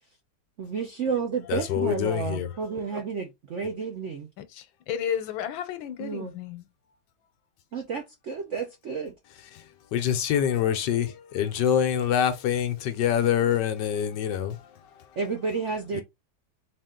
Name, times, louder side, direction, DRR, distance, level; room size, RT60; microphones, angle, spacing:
voice 1, 0.6-4.3 6.0-6.3 7.7-9.1 15.2-16.0, right 5 dB, 65° right, 0.7 m, -31 dB
voice 2, 1.5-2.5 9.5-9.6 9.9-14.6 15.9-16.0, left 9 dB, 70° left, 1.3 m, -25 dB
voice 3, 4.4-6.7, left 9 dB, 90° left, 1.5 m, -33 dB
4.0 x 2.5 x 3.6 m
omnidirectional pair, 2.1 m